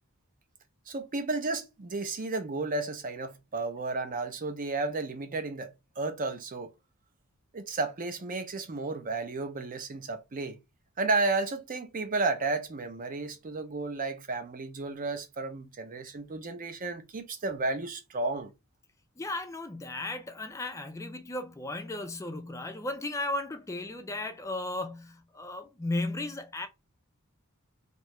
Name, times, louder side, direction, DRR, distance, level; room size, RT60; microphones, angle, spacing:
voice 1, 0.9-6.7 7.5-10.6 11.0-18.5, right 3 dB, 40° right, 0.5 m, -32 dB
voice 2, 19.2-26.7, left 2 dB, 15° left, 0.4 m, -35 dB
2.7 x 2.3 x 3.0 m
head